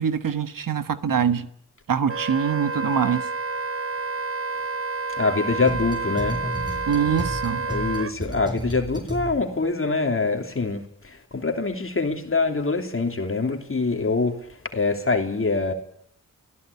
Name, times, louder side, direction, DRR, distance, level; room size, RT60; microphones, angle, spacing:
voice 1, 0.0-1.5 1.9-3.3 6.9-7.7, right 7 dB, 70° right, 1.5 m, -24 dB
Wind instrument woodwind instrument, 2.1-8.1, right 3 dB, 40° right, 1.0 m, -29 dB
voice 2, 5.2-6.4 7.7-14.5 14.7-15.7, left 3 dB, 40° left, 3.0 m, -24 dB
sound 1, 5.5-9.7, right 1 dB, 15° right, 6.1 m, -33 dB
22.5 x 16.0 x 8.4 m
wide cardioid pair, 75°, 34 cm